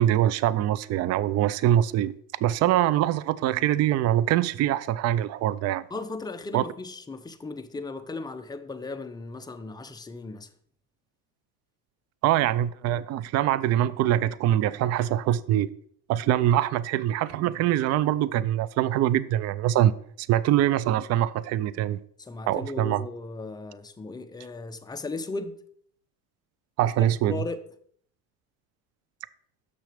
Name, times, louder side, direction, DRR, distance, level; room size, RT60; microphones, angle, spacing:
voice 1, 0.0-2.1 2.4-5.8 6.5-6.6 12.2-15.7 16.1-19.9 20.3-22.0 22.5-23.0 26.8-27.4, right 12 dB, 40° right, 0.4 m, -23 dB
voice 2, 5.9-10.5 22.2-25.6 26.8-26.9 27.3-27.6, left 3 dB, 10° left, 0.6 m, -36 dB
6.8 x 6.2 x 5.0 m
supercardioid pair, 100°, 44 cm